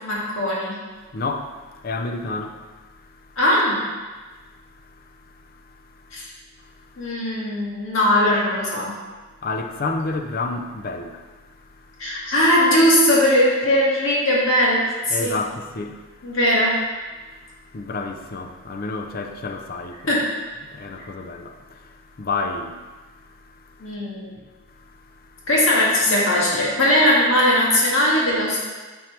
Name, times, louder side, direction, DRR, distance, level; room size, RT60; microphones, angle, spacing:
voice 1, 0.0-0.7 3.4-3.8 6.1-6.2 7.0-8.9 12.0-15.3 16.2-16.8 20.1-20.2 23.8-24.3 25.5-28.6, left 1 dB, 65° left, 1.9 m, -19 dB
voice 2, 1.1-3.4 4.3-6.3 6.6-7.1 9.4-12.1 15.1-16.4 17.3-20.2 20.6-24.0 24.7-25.5, left 3 dB, 45° left, 0.5 m, -32 dB
9.0 x 4.4 x 3.2 m
head